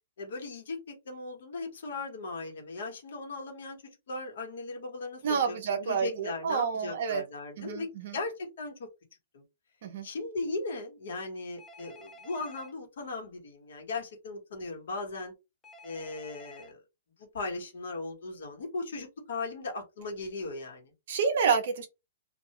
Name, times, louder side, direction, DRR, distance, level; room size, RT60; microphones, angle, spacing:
voice 1, 0.2-8.9 9.3-9.4 10.0-15.3 15.8-16.8 17.2-20.9, left 3 dB, 55° left, 1.1 m, -38 dB
voice 2, 5.2-7.2 7.6-8.2 9.8-10.1 21.1-21.9, right 6 dB, 40° right, 0.6 m, -29 dB
Telephone, 11.6-12.7 15.6-16.7, left 1 dB, 5° left, 0.4 m, -51 dB
2.3 x 2.2 x 2.9 m
hypercardioid pair, 180°, 0 cm